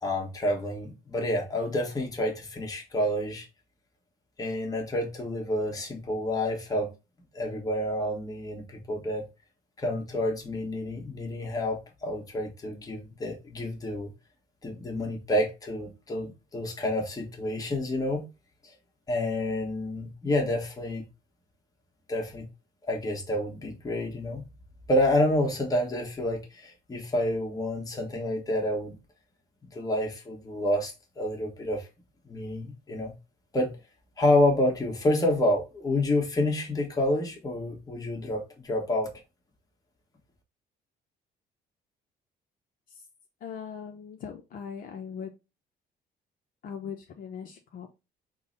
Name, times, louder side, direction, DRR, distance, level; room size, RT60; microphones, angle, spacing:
voice 1, 0.0-3.5 4.4-6.9 7.3-9.3 9.8-14.1 14.6-18.2 18.6-18.7 19.1-21.1 22.1-22.5 22.8-24.4 24.9-28.9 29.6-31.9 32.2-33.1 33.5-33.7 34.2-39.1, left 1 dB, 20° left, 1.1 m, -28 dB
voice 2, 43.4-45.3 46.6-47.9, left 7 dB, 55° left, 0.6 m, -39 dB
3.8 x 2.0 x 3.7 m
cardioid pair, 110°, 17 cm